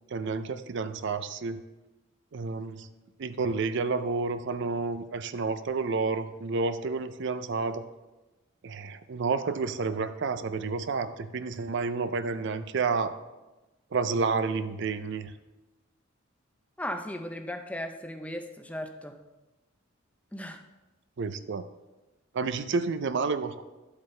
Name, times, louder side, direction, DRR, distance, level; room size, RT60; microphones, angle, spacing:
voice 1, 0.1-1.6 2.3-2.9 3.2-7.8 8.6-13.2 13.9-15.3 21.2-21.6 22.3-23.6, right 4 dB, 60° right, 11 dB, 0.5 m, -30 dB
voice 2, 16.8-19.2 20.3-20.6, left 1 dB, 5° left, 7 dB, 0.5 m, -36 dB
11.5 x 8.1 x 3.3 m, 1.1 s
head